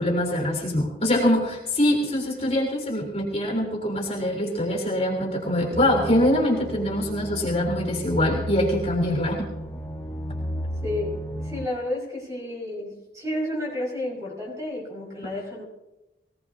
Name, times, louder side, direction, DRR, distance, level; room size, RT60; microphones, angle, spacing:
voice 1, 0.0-9.5, left 1 dB, 35° left, -1 dB, 3.5 m, -24 dB
sound 1, 5.7-11.7, equal, 15° left, 1.9 m, -33 dB
voice 2, 10.8-15.6, left 1 dB, 15° right, -3 dB, 5.6 m, -31 dB
23.0 x 17.5 x 2.8 m, 0.97 s
head